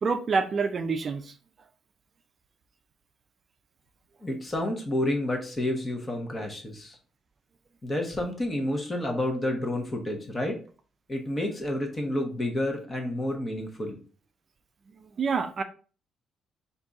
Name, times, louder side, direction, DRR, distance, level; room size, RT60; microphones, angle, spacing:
voice 1, 0.0-1.3 15.0-15.6, right 5 dB, 45° right, 0.4 m, -27 dB
voice 2, 4.2-7.0 7.8-10.6 11.1-14.0, left 1 dB, 25° left, 1.1 m, -30 dB
3.9 x 2.7 x 3.6 m
cardioid pair, 90°, 0 cm